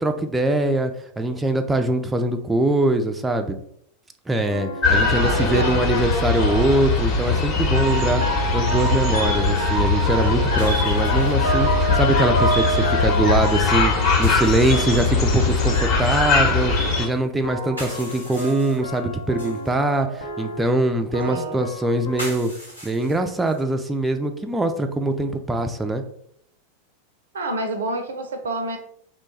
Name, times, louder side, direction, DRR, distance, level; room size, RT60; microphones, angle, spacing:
voice 1, 0.0-3.6 4.3-8.2 8.5-22.5 22.8-26.0, right 2 dB, 10° right, 6 dB, 0.4 m, -23 dB
sound 1, 4.5-17.2 17.4-22.2, right 1 dB, 75° left, 0.7 m, -30 dB
sound 2, 4.8-17.1, left 4 dB, 40° left, 0.9 m, -21 dB
voice 2, 5.1-5.9 21.3-21.7 27.3-28.8, right 2 dB, 65° right, 6 dB, 0.5 m, -28 dB
sound 3, 7.4-7.5 10.6-11.8 14.2-15.3 17.6-19.7 22.2-23.8, equal, 90° left, 1.2 m, -39 dB
3.0 x 2.2 x 4.0 m, 0.68 s
figure-of-eight pair, 90°, 0 cm